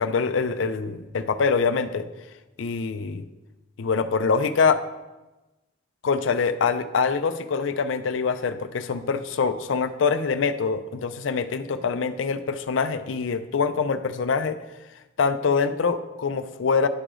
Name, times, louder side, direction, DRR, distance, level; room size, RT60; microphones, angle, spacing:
voice 1, 0.0-2.1 2.6-3.2 3.8-4.8 6.0-14.6 15.2-16.9, left 5 dB, 80° left, 11 dB, 0.4 m, -24 dB
11.0 x 4.9 x 3.7 m, 1.1 s
head